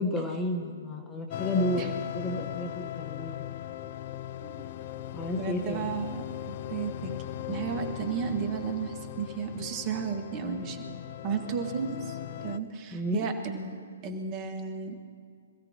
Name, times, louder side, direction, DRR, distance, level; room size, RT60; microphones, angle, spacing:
voice 1, 0.0-1.8 2.1-3.6 5.1-5.9 12.9-13.2, left 1 dB, 15° left, 3 dB, 1.3 m, -31 dB
sound 1, 1.3-12.6, left 12 dB, 45° left, 0.5 m, -38 dB
voice 2, 5.4-7.2 7.5-10.8 11.2-15.0, right 6 dB, 30° right, 4 dB, 1.9 m, -34 dB
26.5 x 15.5 x 3.0 m, 2.2 s
figure-of-eight pair, 130°, 0 cm